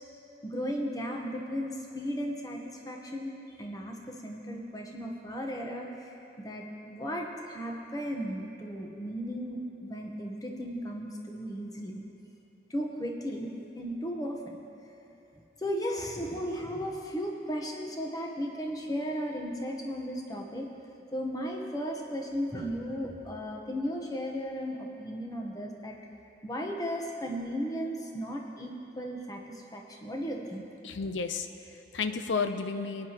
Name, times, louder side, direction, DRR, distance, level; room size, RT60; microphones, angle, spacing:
voice 1, 0.4-3.3 3.6-12.0 12.7-14.6 15.6-20.7 21.1-26.0 26.4-30.6, equal, 20° left, 1 dB, 1.0 m, -35 dB
voice 2, 30.8-33.1, left 4 dB, 85° left, 9 dB, 0.6 m, -32 dB
23.0 x 9.5 x 3.0 m, 2.9 s
head